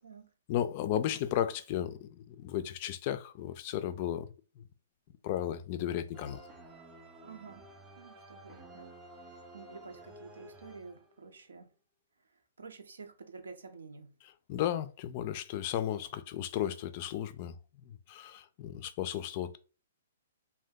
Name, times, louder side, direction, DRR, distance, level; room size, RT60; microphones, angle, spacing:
voice 1, 0.5-4.6 5.2-6.4 14.2-17.6 17.8-19.6, left 11 dB, 40° left, 0.3 m, -34 dB
sound 1, 6.1-11.4, right 1 dB, 15° right, 0.5 m, -52 dB
voice 2, 7.2-7.6 8.0-11.7 12.6-14.1, right 4 dB, 90° right, 0.7 m, -50 dB
2.7 x 2.2 x 3.5 m
hypercardioid pair, 140°, 0 cm